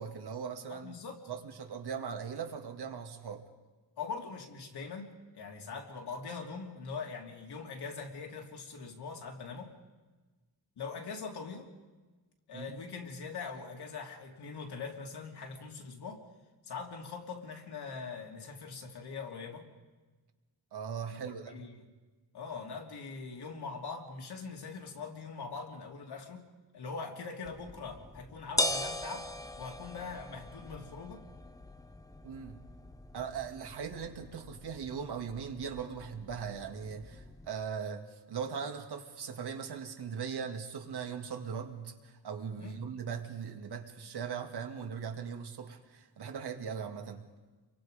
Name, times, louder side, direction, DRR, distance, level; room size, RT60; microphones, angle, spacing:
voice 1, 0.0-1.0 1.3-3.4 12.5-12.7 20.7-21.6 32.2-32.6 33.1-47.2, right 6 dB, 80° right, 5 dB, 2.3 m, -39 dB
voice 2, 0.7-1.2 4.0-9.7 10.8-11.7 12.5-16.2 16.6-19.7 21.1-21.2 21.5-21.8 22.3-29.3 29.6-31.2 42.6-42.8, left 5 dB, 80° left, 1 dB, 3.2 m, -42 dB
sound 1, 27.4-37.5, left 1 dB, 10° left, 0.8 m, -40 dB
29.5 x 23.5 x 5.2 m, 1.3 s
wide cardioid pair, 155°, 39 cm